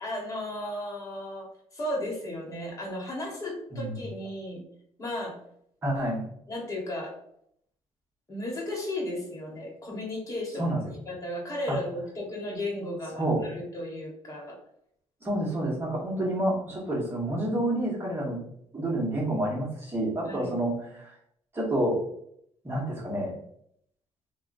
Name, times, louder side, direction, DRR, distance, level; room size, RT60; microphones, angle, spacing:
voice 1, 0.0-1.5 1.7-4.6 5.0-5.3 6.5-7.1 8.3-10.8 11.1-14.6 20.3-20.5, left 1 dB, 30° left, -2 dB, 1.3 m, -34 dB
voice 2, 3.7-4.0 5.8-6.2 10.5-10.9 11.7-11.8 13.2-13.4 15.2-18.4 18.7-21.1 21.5-22.0 22.6-23.3, right 1 dB, 20° right, -4 dB, 1.3 m, -29 dB
3.5 x 2.3 x 2.6 m, 0.69 s
cardioid pair, 125°, 11 cm